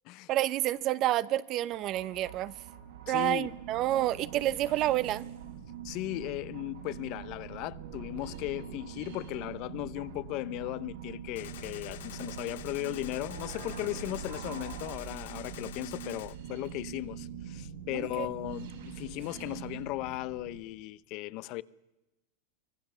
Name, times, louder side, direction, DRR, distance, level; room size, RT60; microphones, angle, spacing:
voice 1, 0.3-2.5 3.1-5.2 17.9-18.3, right 14 dB, 40° right, 0.8 m, -29 dB
sound 1, 1.7-20.6, right 8 dB, 80° right, 6.7 m, -43 dB
voice 2, 3.1-3.5 5.8-21.6, left 18 dB, 50° left, 0.7 m, -37 dB
Gunshot gunfire, 11.4-16.4, left 12 dB, 80° left, 2.1 m, -47 dB
25.0 x 18.0 x 7.0 m
supercardioid pair, 130°, 0 cm